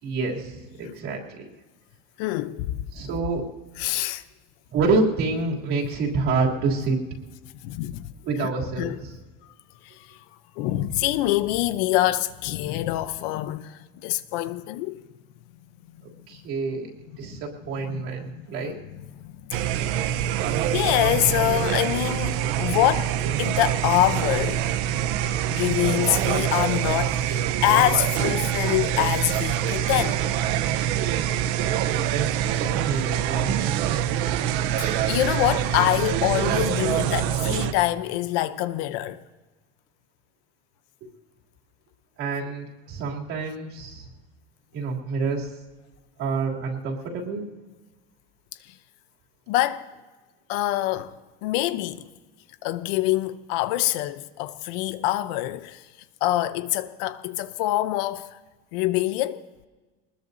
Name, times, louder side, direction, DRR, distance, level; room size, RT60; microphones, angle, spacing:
voice 1, 0.0-1.5 2.9-3.4 4.7-7.0 8.2-9.1 16.0-16.9 17.2-18.8 32.6-33.8 41.0-41.1 42.2-44.1 44.7-45.5 46.2-47.5, right 4 dB, 45° right, 3.0 m, -27 dB
voice 2, 2.2-2.8 3.8-4.2 7.6-8.1 8.4-8.5 8.8-9.0 9.8-10.2 10.6-15.0 17.3-17.4 17.9-18.8 19.2-20.2 20.7-24.7 25.5-30.2 32.4-32.6 34.8-39.2 49.5-49.9 50.5-52.1 52.6-55.8 56.2-58.4 58.7-59.5, left 15 dB, 60° left, 0.7 m, -25 dB
sound 1, 19.5-37.7, right 11 dB, 60° right, 0.9 m, -25 dB
23.0 x 20.5 x 2.7 m
cardioid pair, 170°, 30 cm